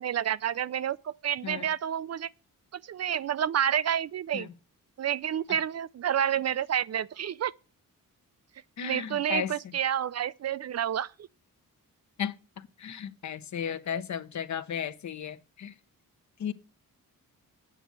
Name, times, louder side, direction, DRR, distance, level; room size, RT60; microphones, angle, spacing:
voice 1, 0.0-2.3 2.7-4.5 5.0-7.5 8.8-11.1, right 9 dB, 50° right, 0.4 m, -29 dB
voice 2, 8.8-9.5 12.2-15.7 16.4-16.5, left 8 dB, 55° left, 0.8 m, -35 dB
8.7 x 6.2 x 8.0 m
cardioid pair, 95°, 34 cm